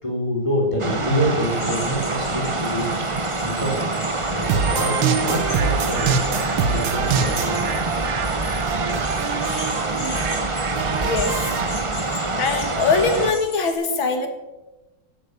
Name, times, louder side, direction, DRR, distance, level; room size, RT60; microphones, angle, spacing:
voice 1, 0.0-2.9 3.4-3.8 4.3-7.8, equal, 15° left, -1 dB, 4.0 m, -26 dB
sound 1, 0.8-13.3, right 3 dB, 25° right, 0.7 m, -25 dB
sound 2, 1.4-13.7, left 1 dB, 65° left, 4.9 m, -37 dB
sound 3, 4.4-11.7, right 7 dB, 75° right, 1.7 m, -26 dB
voice 2, 11.0-11.4 12.4-14.3, left 4 dB, 80° left, 6 dB, 2.6 m, -22 dB
16.5 x 8.4 x 6.9 m, 1.1 s
omnidirectional pair, 2.1 m